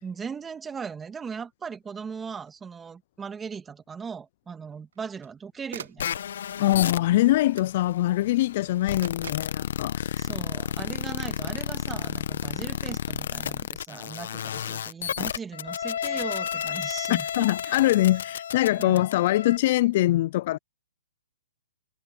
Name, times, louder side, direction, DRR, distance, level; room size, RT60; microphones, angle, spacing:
voice 1, 0.0-6.0 10.2-17.7 18.8-19.0, right 6 dB, 10° right, 2.0 m, -38 dB
sound 1, 2.5-2.6 4.9-5.3 5.7-6.1 7.5-7.8 9.0-9.6 11.4-11.7, right 8 dB, 70° right, 1.6 m, -43 dB
sound 2, 6.0-19.6, left 9 dB, 65° left, 1.0 m, -32 dB
voice 2, 6.6-10.3 17.1-20.6, left 15 dB, 45° left, 0.4 m, -23 dB
hypercardioid pair, 150°, 0 cm